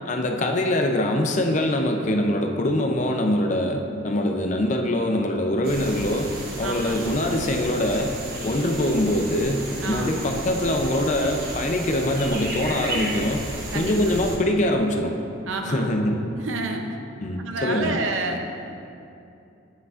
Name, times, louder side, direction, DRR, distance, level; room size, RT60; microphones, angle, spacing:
voice 1, 0.1-8.1 8.4-13.4 13.7-15.2 15.6-16.3 17.2-18.0, left 1 dB, 35° left, 3 dB, 0.5 m, -23 dB
sound 1, 5.6-14.4, right 1 dB, 50° right, 1.0 m, -33 dB
voice 2, 6.6-7.0 9.8-10.2 13.7-14.2 15.5-16.0 16.4-17.0 17.4-18.4, right 3 dB, 80° right, 4 dB, 0.6 m, -29 dB
8.0 x 7.9 x 2.4 m, 2.7 s
head